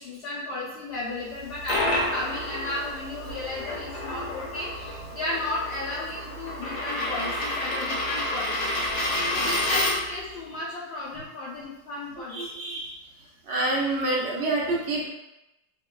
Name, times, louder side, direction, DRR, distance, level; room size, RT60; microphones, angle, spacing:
voice 1, 0.0-8.8 9.3-12.5, left 2 dB, 90° left, -7 dB, 0.5 m, -34 dB
Coin (dropping), 1.3-10.2, left 1 dB, 70° left, 1.0 m, -29 dB
voice 2, 9.3-9.6 12.3-13.0 13.4-15.1, right 2 dB, 65° right, -3 dB, 0.7 m, -28 dB
2.7 x 2.2 x 2.2 m, 0.92 s
omnidirectional pair, 1.7 m